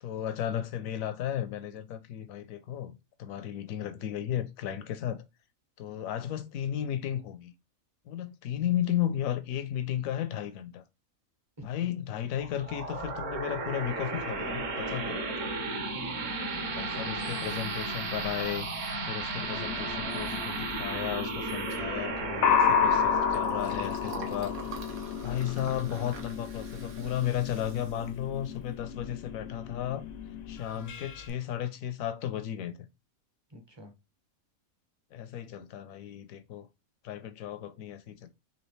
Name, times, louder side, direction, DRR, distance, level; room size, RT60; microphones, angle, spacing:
voice 1, 0.0-2.9 3.2-5.2 5.8-7.5 8.1-10.8 11.6-15.2 16.7-24.7 25.2-30.0 30.5-32.7 35.1-36.7 37.0-38.3, left 10 dB, 80° left, 1.0 m, -34 dB
sound 1, 12.4-25.5, right 3 dB, 65° right, 1.3 m, -35 dB
voice 2, 15.9-17.6 30.7-31.1 33.5-33.9, right 1 dB, 30° right, 0.5 m, -49 dB
sound 2, 19.4-31.3, left 7 dB, 65° left, 0.6 m, -32 dB
Liquid, 22.5-29.2, right 4 dB, 85° right, 1.3 m, -46 dB
4.0 x 2.9 x 3.2 m
omnidirectional pair, 1.5 m